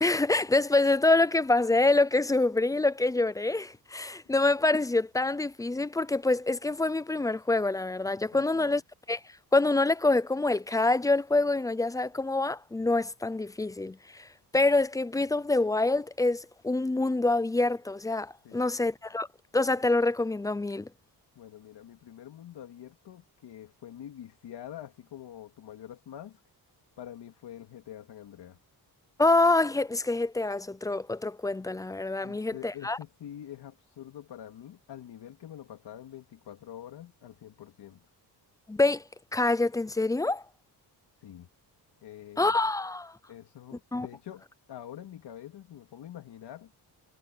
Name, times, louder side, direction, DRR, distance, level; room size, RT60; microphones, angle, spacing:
voice 1, 0.0-8.8 9.1-9.2 9.5-19.3 19.5-20.9 29.2-33.0 38.7-39.0 39.3-40.4 42.4-43.2 43.9-44.1, left 2 dB, 10° left, 0.3 m, -26 dB
voice 2, 8.3-8.8 18.4-18.7 21.4-26.4 27.0-28.6 32.2-38.0 41.2-41.5 42.0-42.5 43.3-46.7, left 11 dB, 80° left, 3.4 m, -46 dB
wide cardioid pair, 165°, 40 cm